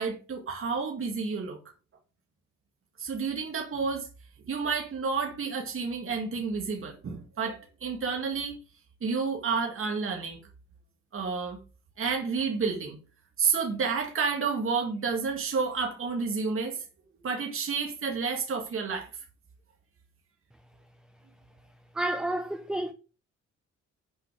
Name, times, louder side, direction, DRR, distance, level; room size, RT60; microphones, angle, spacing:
voice 1, 0.0-1.6 3.0-4.1 4.5-8.6 9.0-10.4 11.1-11.6 12.0-13.0 13.4-16.8 17.2-19.1, right 5 dB, 45° right, 2.1 m, -30 dB
voice 2, 21.9-22.9, right 1 dB, 5° right, 0.6 m, -30 dB
7.6 x 5.3 x 5.1 m
cardioid pair, 90°, 30 cm